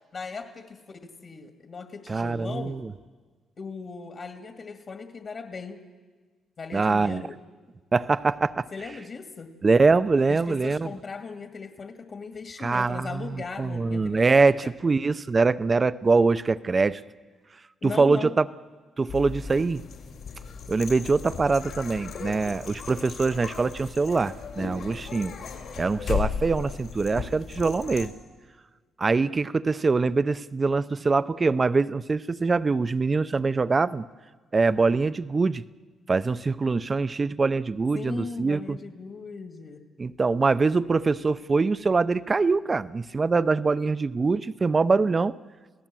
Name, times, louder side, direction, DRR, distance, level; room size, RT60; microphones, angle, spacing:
voice 1, 0.1-2.8 3.6-5.8 6.6-7.3 8.7-9.5 10.3-14.7 17.8-18.3 37.9-39.8, left 4 dB, 45° left, 6 dB, 2.0 m, -38 dB
voice 2, 2.1-2.9 6.7-7.3 7.9-8.7 9.6-10.9 12.6-17.0 17.8-18.5 19.0-19.8 20.7-25.3 25.8-28.1 29.0-34.1 34.5-35.6 36.1-38.8 40.0-45.3, right 4 dB, 30° right, 15 dB, 0.6 m, -23 dB
sound 1, 19.1-28.1, left 6 dB, 70° left, 3.8 m, -36 dB
28.0 x 17.0 x 7.6 m, 1.4 s
cardioid pair, 90°, 0 cm